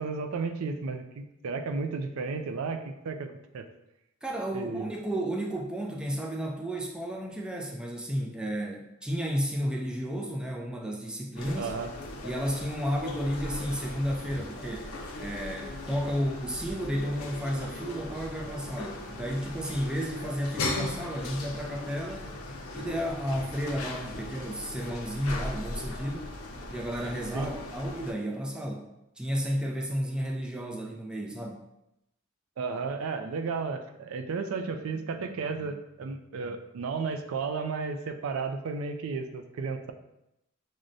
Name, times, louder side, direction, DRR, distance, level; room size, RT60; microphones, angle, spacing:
voice 1, 0.0-3.7 4.5-4.9 11.6-11.9 27.3-27.5 32.6-39.9, right 4 dB, 80° right, 7 dB, 0.4 m, -33 dB
voice 2, 4.2-11.7 12.2-22.3 22.7-26.3 26.7-28.9 29.2-31.6, equal, 5° right, 0 dB, 0.4 m, -32 dB
sound 1, 11.4-28.1, left 2 dB, 85° left, 0.5 m, -38 dB
6.1 x 2.1 x 2.5 m, 0.85 s
head